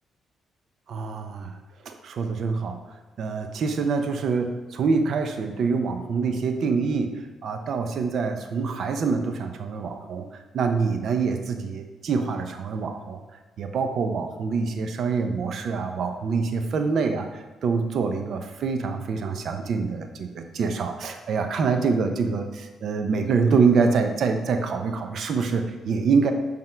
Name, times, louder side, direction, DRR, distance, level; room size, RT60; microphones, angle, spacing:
voice 1, 0.9-1.5 1.8-2.8 3.2-7.1 7.4-10.3 10.5-13.2 13.6-26.3, right 5 dB, 65° right, 6 dB, 0.7 m, -25 dB
7.7 x 3.7 x 4.5 m, 1.2 s
cardioid pair, 90°, 0 cm